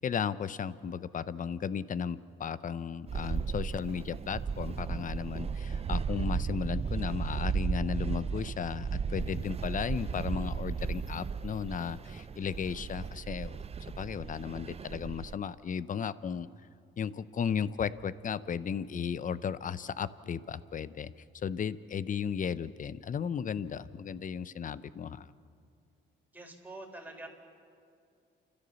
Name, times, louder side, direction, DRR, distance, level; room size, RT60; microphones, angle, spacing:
voice 1, 0.0-13.6 14.0-16.5 17.0-25.3, left 7 dB, 40° left, 16 dB, 0.7 m, -35 dB
sound 1, 3.1-15.4, right 6 dB, 30° right, 0.6 m, -35 dB
voice 2, 26.3-27.3, right 2 dB, 10° right, 1 dB, 3.8 m, -45 dB
29.5 x 13.5 x 7.0 m, 2.4 s
cardioid pair, 90°, 20 cm